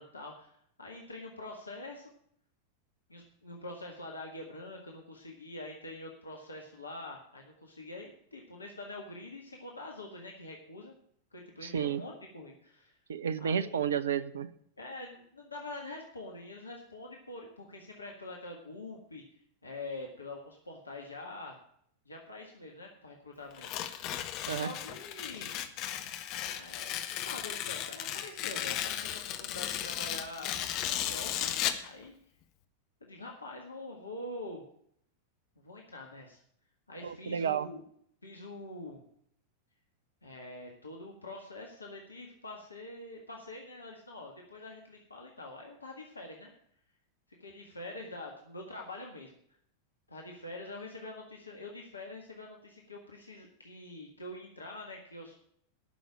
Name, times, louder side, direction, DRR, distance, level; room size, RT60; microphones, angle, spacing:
voice 1, 0.0-2.1 3.1-10.9 11.3-13.0 13.4-13.8 14.8-19.2 19.6-21.6 22.0-24.1 24.4-25.5 26.5-31.5 31.8-32.1 33.0-34.6 35.6-36.4 36.9-37.8 38.2-39.0 40.2-46.5 47.4-49.4 50.1-55.4, left 2 dB, 80° left, 0 dB, 1.7 m, -45 dB
voice 2, 11.6-12.0 13.1-14.5 24.5-24.7 37.0-37.7, right 8 dB, 65° right, 15 dB, 0.7 m, -31 dB
Tearing, 23.5-31.9, left 11 dB, 40° left, 1.0 m, -35 dB
11.0 x 6.4 x 8.8 m, 0.66 s
figure-of-eight pair, 90°, 0 cm